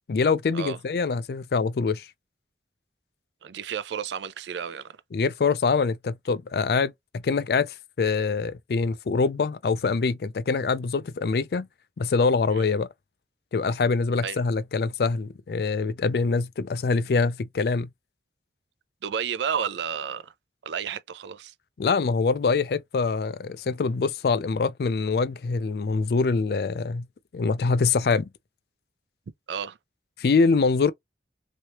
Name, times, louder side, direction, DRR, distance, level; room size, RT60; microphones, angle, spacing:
voice 1, 0.1-2.1 5.1-11.7 12.0-12.9 13.5-17.9 21.8-27.1 27.3-28.3 30.2-30.9, left 4 dB, 60° left, 0.4 m, -24 dB
voice 2, 3.4-5.0 12.5-12.7 14.2-14.4 19.0-20.3 20.6-21.5 29.5-29.8, right 7 dB, 80° right, 0.4 m, -31 dB
3.1 x 2.8 x 2.9 m
head